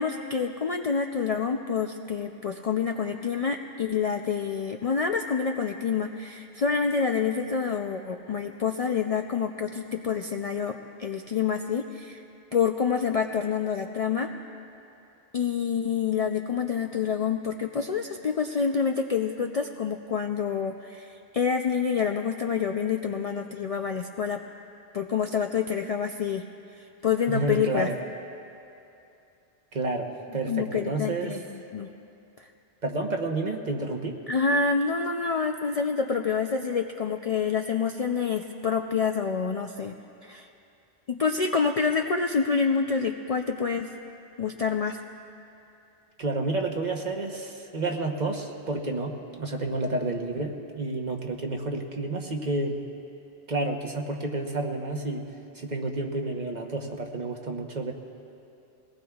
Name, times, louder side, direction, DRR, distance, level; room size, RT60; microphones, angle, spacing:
voice 1, 0.0-12.2 12.5-14.3 15.3-24.4 24.9-26.4 27.0-27.9 30.5-31.4 31.7-31.9 32.4-32.5 34.3-40.0 40.2-40.5 41.1-43.9 44.4-45.0, left 6 dB, 50° left, 4 dB, 0.4 m, -27 dB
voice 2, 27.3-28.0 29.7-31.4 32.8-34.2 46.2-52.8 53.5-55.2 55.5-57.9, right 2 dB, 45° right, 2 dB, 1.1 m, -30 dB
22.5 x 18.5 x 2.4 m, 2.7 s
omnidirectional pair, 1.1 m